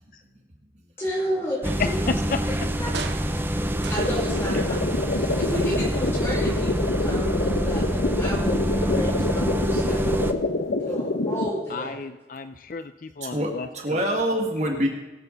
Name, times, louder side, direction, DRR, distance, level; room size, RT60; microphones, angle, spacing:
voice 1, 1.0-2.0 2.5-2.9 3.3-10.3 10.8-12.0, equal, 15° left, -4 dB, 5.1 m, -32 dB
sound 1, 1.6-10.3, right 1 dB, 10° right, 0.6 m, -26 dB
voice 2, 1.8-2.4 9.8-10.1 11.7-14.0, left 4 dB, 50° left, 10 dB, 0.5 m, -32 dB
sound 2, 2.3-4.7 5.0-6.0 6.4-6.5, right 5 dB, 75° right, 0.9 m, -40 dB
sound 3, 4.0-11.5, left 2 dB, 80° left, 0.8 m, -26 dB
voice 3, 13.2-14.9, equal, 40° right, 1 dB, 1.8 m, -25 dB
22.5 x 8.3 x 3.9 m, 1.2 s
head